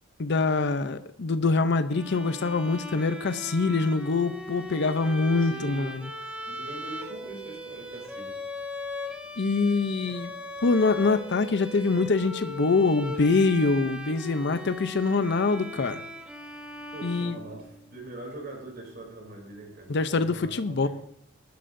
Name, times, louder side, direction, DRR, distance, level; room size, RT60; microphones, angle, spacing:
voice 1, 0.2-6.1 9.4-10.3 10.6-16.0 17.0-17.4 19.9-20.9, left 3 dB, 60° left, 10 dB, 0.6 m, -24 dB
Bowed string instrument, 1.9-18.0, left 1 dB, 5° right, 1.4 m, -39 dB
voice 2, 5.4-5.9 6.4-8.4 16.9-20.9, right 2 dB, 50° right, 0 dB, 3.2 m, -42 dB
21.5 x 11.5 x 2.6 m, 0.69 s
head